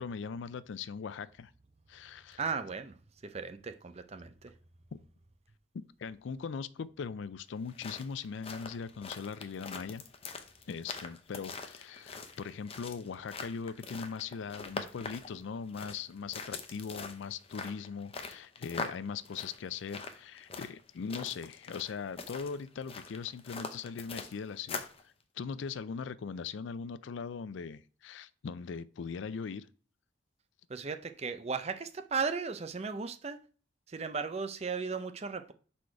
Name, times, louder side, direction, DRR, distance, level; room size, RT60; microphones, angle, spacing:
voice 1, 0.0-1.5 1.9-2.4 4.9-5.0 5.7-10.0 10.7-29.7, left 6 dB, 70° left, 0.4 m, -40 dB
voice 2, 2.4-3.0 3.2-4.5 30.7-33.4 33.9-35.5, right 5 dB, 30° right, 0.5 m, -36 dB
sound 1, 7.6-25.0, left 4 dB, 30° left, 0.6 m, -43 dB
4.7 x 4.3 x 5.7 m
head